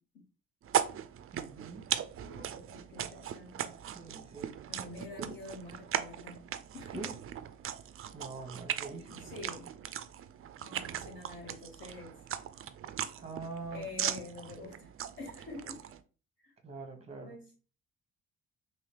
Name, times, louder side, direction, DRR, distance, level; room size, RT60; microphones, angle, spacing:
sound 1, 0.6-16.0, right 10 dB, 45° right, 0.4 m, -38 dB
voice 1, 1.3-1.9 3.9-4.6 5.1-5.4 6.9-7.2 8.1-9.3 13.2-13.9 16.6-17.4, right 3 dB, 20° right, 1.0 m, -44 dB
voice 2, 2.1-3.8 4.7-7.0 9.1-9.7 10.6-12.2 13.7-15.8 16.4-16.5 17.2-17.6, left 3 dB, 40° left, 1.8 m, -47 dB
2.9 x 2.8 x 3.3 m
cardioid pair, 90°, 30 cm